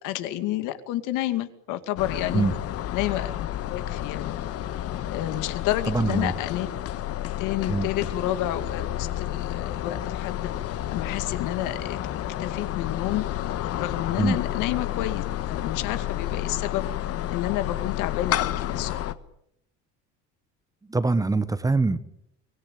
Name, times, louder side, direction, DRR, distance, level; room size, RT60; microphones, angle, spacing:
voice 1, 0.0-2.5 2.9-4.4 5.1-6.7 7.4-10.5 10.9-13.2 13.8-16.9 17.3-19.0, left 13 dB, 75° left, 10 dB, 2.3 m, -30 dB
sound 1, 2.0-19.1, left 12 dB, 50° left, 1.4 m, -30 dB
voice 2, 5.9-6.3 7.7-7.9 14.2-14.4 20.9-22.0, right 3 dB, 10° right, 13 dB, 1.1 m, -23 dB
24.5 x 19.5 x 9.2 m, 0.75 s
cardioid pair, 145°, 31 cm